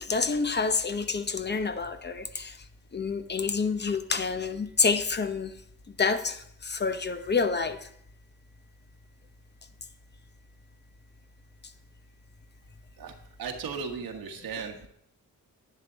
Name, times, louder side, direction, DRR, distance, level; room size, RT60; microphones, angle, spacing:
voice 1, 0.0-2.6 2.9-5.5 6.0-7.9, left 4 dB, 30° left, 0.9 m, -28 dB
voice 2, 13.0-14.9, right 5 dB, 90° right, 1.6 m, -37 dB
10.5 x 10.5 x 4.0 m
cardioid pair, 100°, 35 cm